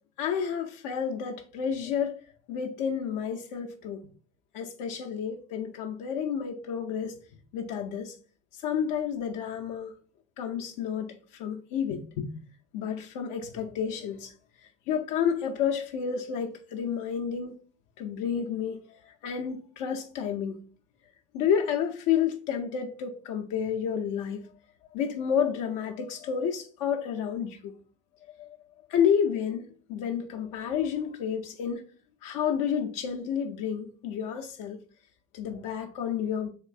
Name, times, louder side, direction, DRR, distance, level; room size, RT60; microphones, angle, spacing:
voice 1, 0.2-2.2 2.5-4.0 4.5-7.1 7.5-8.2 8.6-9.9 10.4-12.4 12.7-14.3 14.9-17.6 18.0-20.6 21.3-24.4 24.9-27.7 28.4-28.6 28.9-31.8 32.2-34.8 35.3-36.5, left 8 dB, 60° left, 0.5 m, -30 dB
3.6 x 3.1 x 2.3 m
hypercardioid pair, 75°, 38 cm